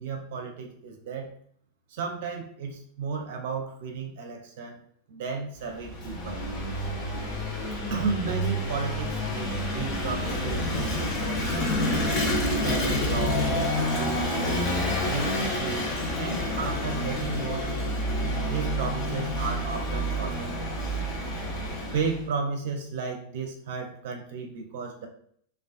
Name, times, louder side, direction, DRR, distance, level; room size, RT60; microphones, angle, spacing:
voice 1, 0.0-1.3 1.9-4.8 5.1-6.4 7.9-11.8 12.6-17.6 18.5-20.7 21.9-25.1, right 4 dB, 55° right, 3 dB, 0.5 m, -34 dB
Vehicle / Engine, 5.6-22.3, equal, 30° left, 0.7 m, -28 dB
2.3 x 2.3 x 2.4 m, 0.64 s
figure-of-eight pair, 90°, 0 cm